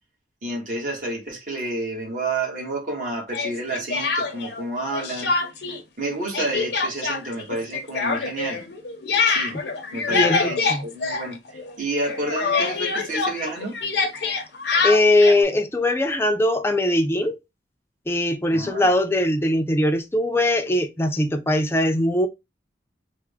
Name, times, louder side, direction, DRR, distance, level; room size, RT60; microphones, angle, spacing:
voice 1, 0.4-5.3 6.0-8.6 9.2-9.6 9.9-13.8 18.5-18.9, right 2 dB, 50° right, 1.3 m, -30 dB
Speech, 3.3-4.6 4.9-5.8 6.0-11.7 12.0-15.4, left 4 dB, 70° left, 0.6 m, -25 dB
voice 2, 10.1-10.8 14.8-17.4 18.1-22.3, left 1 dB, 15° left, 0.4 m, -21 dB
3.4 x 2.1 x 3.4 m
head